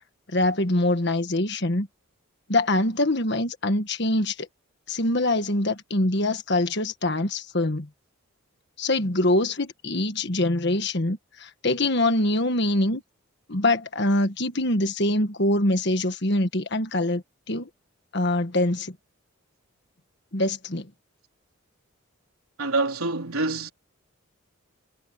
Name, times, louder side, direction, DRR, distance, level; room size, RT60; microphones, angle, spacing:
voice 1, 0.3-1.9 2.5-4.5 4.9-7.9 8.8-13.0 13.5-17.7 18.1-18.9 20.3-20.9, left 1 dB, 50° left, 1.6 m, -24 dB
voice 2, 22.6-23.7, right 3 dB, 85° right, 3.8 m, -26 dB
head